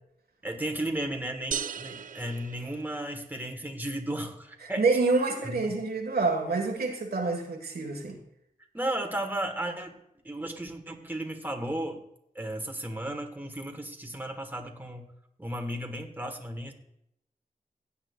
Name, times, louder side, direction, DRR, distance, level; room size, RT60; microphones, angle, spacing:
voice 1, 0.4-4.9 5.4-5.7 8.7-9.9 10.2-12.0 12.3-15.1 15.4-16.7, right 1 dB, 10° right, 3 dB, 1.6 m, -34 dB
sound 1, 1.5-3.4, right 7 dB, 55° right, 0.6 m, -37 dB
voice 2, 4.8-8.2, right 3 dB, 80° right, 3 dB, 1.6 m, -27 dB
16.5 x 8.5 x 2.4 m, 0.77 s
cardioid pair, 55°, 16 cm